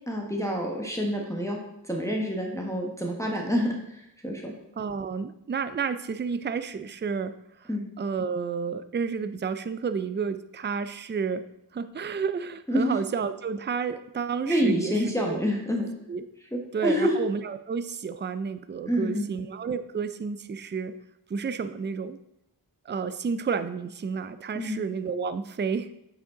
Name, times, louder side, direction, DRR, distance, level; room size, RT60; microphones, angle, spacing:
voice 1, 0.1-1.6 1.9-3.8 4.2-4.5 7.7-7.8 12.7-12.9 14.4-15.9 16.5-17.1 18.9-19.3 24.5-24.8, equal, 5° left, -1 dB, 1.3 m, -27 dB
voice 2, 4.8-7.7 8.0-11.4 11.7-15.4 16.1-16.2 16.7-20.9 21.3-22.2 22.9-25.9, right 5 dB, 25° right, 11 dB, 0.4 m, -31 dB
8.1 x 5.1 x 3.8 m, 0.82 s
wide cardioid pair, 45°, 43 cm